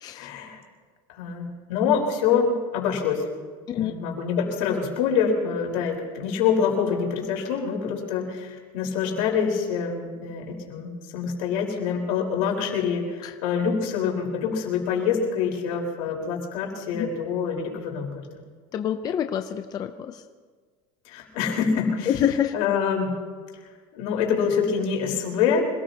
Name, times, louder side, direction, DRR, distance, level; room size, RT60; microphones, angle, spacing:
voice 1, 0.1-0.6 1.1-3.3 3.7-18.3 21.0-22.1 22.5-23.1 23.9-25.6, left 6 dB, 75° left, -1 dB, 4.3 m, -26 dB
voice 2, 18.7-20.2 22.1-22.5, left 10 dB, 20° left, 7 dB, 0.5 m, -26 dB
26.0 x 19.0 x 2.9 m, 1.5 s
cardioid pair, 175°, 17 cm